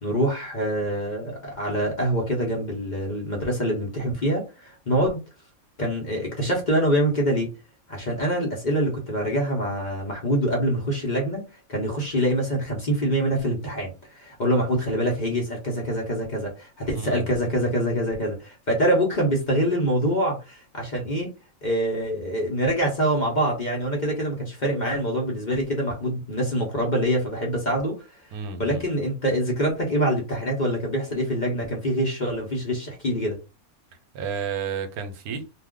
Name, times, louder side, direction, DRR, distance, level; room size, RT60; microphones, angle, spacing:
voice 1, 0.0-5.2 5.8-7.5 7.9-11.4 11.7-21.3 21.6-28.0 28.6-33.4, right 1 dB, 40° left, 0.8 m, -25 dB
voice 2, 16.9-17.3 28.3-28.8 34.1-35.5, right 6 dB, 85° right, 1.1 m, -31 dB
2.5 x 2.3 x 3.6 m
omnidirectional pair, 1.5 m